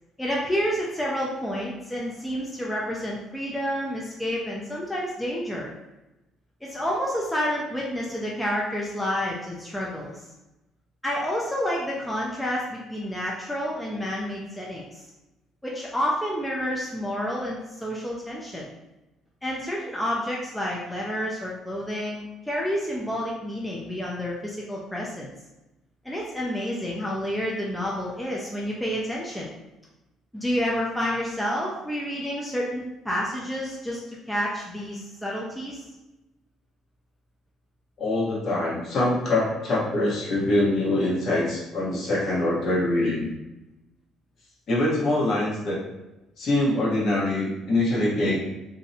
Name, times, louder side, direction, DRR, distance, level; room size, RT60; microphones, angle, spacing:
voice 1, 0.2-5.7 6.6-10.3 11.0-15.0 15.6-18.7 19.4-25.3 26.0-29.5 30.3-35.8, equal, 5° left, -4 dB, 0.4 m, -29 dB
voice 2, 38.0-43.3 44.7-45.8 46.4-48.4, left 1 dB, 50° left, -5 dB, 0.9 m, -24 dB
2.6 x 2.0 x 2.6 m, 0.98 s
cardioid pair, 125°, 0 cm